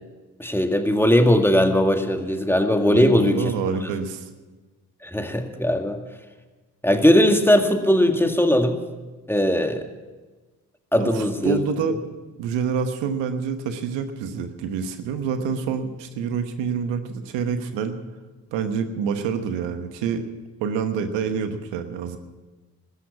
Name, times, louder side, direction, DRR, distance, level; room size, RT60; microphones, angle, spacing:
voice 1, 0.4-3.5 5.0-6.0 6.8-8.8 9.3-9.9 10.9-11.6, left 1 dB, 5° left, 5 dB, 2.0 m, -19 dB
voice 2, 2.9-4.3 10.9-12.0 12.4-18.0 18.5-20.3 20.6-22.2, right 6 dB, 85° right, 8 dB, 1.1 m, -27 dB
13.5 x 11.0 x 8.4 m, 1.3 s
supercardioid pair, 45°, 42 cm